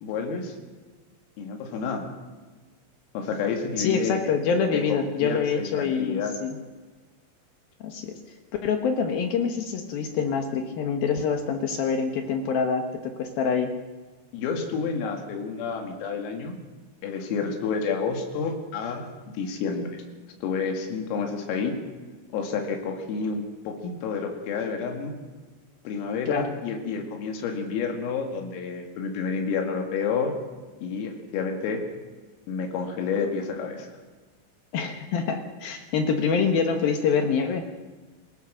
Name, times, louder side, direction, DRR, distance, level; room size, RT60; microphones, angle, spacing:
voice 1, 0.0-0.6 1.4-2.0 3.1-4.2 4.7-6.4 14.3-16.6 17.0-19.1 19.4-20.0 20.4-21.8 22.3-25.2 25.8-30.3 30.8-31.8 32.5-33.9, left 5 dB, 85° left, 3 dB, 5.0 m, -29 dB
voice 2, 3.8-6.6 7.8-8.2 8.6-13.7 26.3-26.5 34.7-37.6, left 6 dB, 70° left, 5 dB, 2.3 m, -26 dB
27.5 x 17.0 x 6.4 m, 1.3 s
omnidirectional pair, 5.9 m